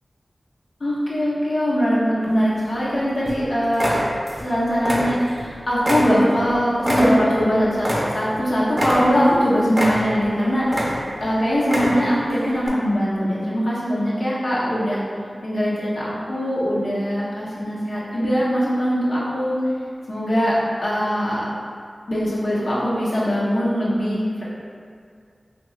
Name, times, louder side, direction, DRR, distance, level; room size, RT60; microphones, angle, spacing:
voice 1, 0.8-4.0 4.4-10.9 11.2-15.0 15.4-19.6 20.1-20.5 20.8-21.4 22.1-24.4, equal, 75° left, -9 dB, 0.9 m, -21 dB
sound 1, 2.2-2.9 3.3-3.4 3.7-4.5 4.8-5.5 5.8-8.4 8.7-9.4 9.7-10.3 10.6-11.2 11.6-12.2 12.6-12.7, equal, 20° right, 0.7 m, -24 dB
2.8 x 2.2 x 3.8 m, 2.2 s
cardioid pair, 45°, 0 cm